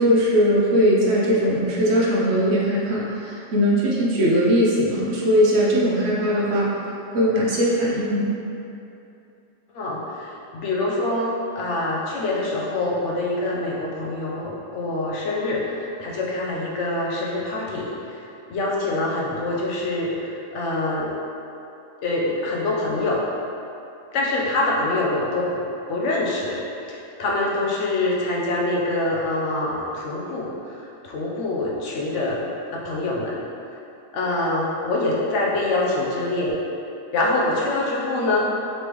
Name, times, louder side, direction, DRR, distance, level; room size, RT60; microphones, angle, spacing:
voice 1, 0.0-6.7 7.1-8.3, equal, 60° right, -5 dB, 1.0 m, -20 dB
voice 2, 9.7-18.2 18.5-21.1 22.0-23.2 24.1-25.6 25.9-32.5 32.7-33.4 34.1-36.5 37.1-38.6, left 2 dB, 70° left, -4 dB, 1.0 m, -25 dB
4.3 x 3.3 x 3.0 m, 2.8 s
omnidirectional pair, 1.3 m